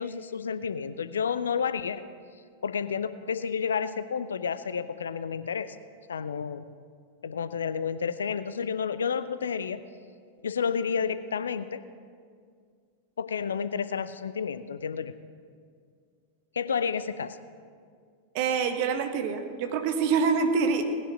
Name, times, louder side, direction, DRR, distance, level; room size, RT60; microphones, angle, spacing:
voice 1, 0.0-2.0 2.6-5.8 6.1-6.7 7.2-9.8 10.4-11.8 13.2-15.1 16.5-17.4, left 6 dB, 70° left, 13 dB, 0.6 m, -30 dB
voice 2, 18.3-20.8, right 5 dB, 45° right, 6 dB, 1.4 m, -26 dB
18.5 x 10.0 x 5.9 m, 2.1 s
figure-of-eight pair, 90°, 0 cm